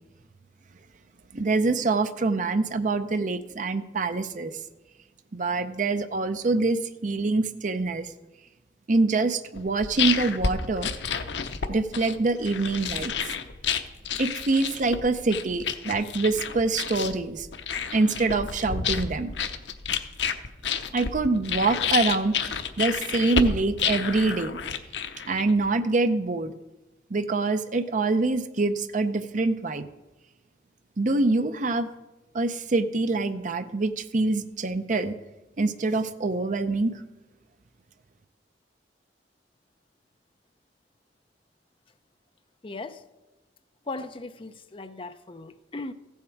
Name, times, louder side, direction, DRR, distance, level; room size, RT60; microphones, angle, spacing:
voice 1, 1.3-4.5 5.3-8.1 8.9-10.9 11.7-13.3 14.2-17.5 17.9-19.3 20.9-24.6 25.3-26.5 27.1-29.9 31.0-31.9 32.3-35.1 35.6-37.0, right 3 dB, 45° right, 0.6 m, -25 dB
sound 1, 9.5-25.7, left 6 dB, 80° left, 0.8 m, -30 dB
voice 2, 42.6-43.0 43.9-45.9, left 3 dB, 30° left, 0.6 m, -37 dB
15.5 x 7.2 x 4.6 m
head